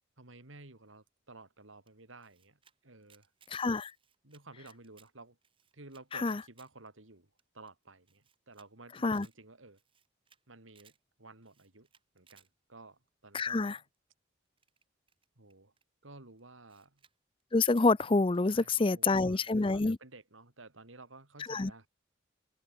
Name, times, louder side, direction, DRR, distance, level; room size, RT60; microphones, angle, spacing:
voice 1, 0.2-3.3 4.2-5.4 5.7-9.8 10.5-10.9 11.2-11.9 12.1-13.8 15.4-15.7 16.0-17.0 18.5-21.9, right 2 dB, 80° right, 3.2 m, -54 dB
Camera, 1.9-2.7 3.0-3.5 3.8-5.1 5.4-6.7 7.0-7.1 7.4-7.5 7.7-7.8 8.1-8.7 9.0-9.3 9.7-10.4 10.7-11.0 11.4-12.5 13.7-14.0 14.6-15.8 16.4-16.5 16.7-17.1 17.4-17.9 18.3-19.3, right 7 dB, 25° right, 6.3 m, -65 dB
voice 2, 3.5-3.9 6.1-6.4 9.0-9.3 13.3-13.8 17.5-20.0 21.5-21.7, left 3 dB, 25° left, 0.5 m, -27 dB
head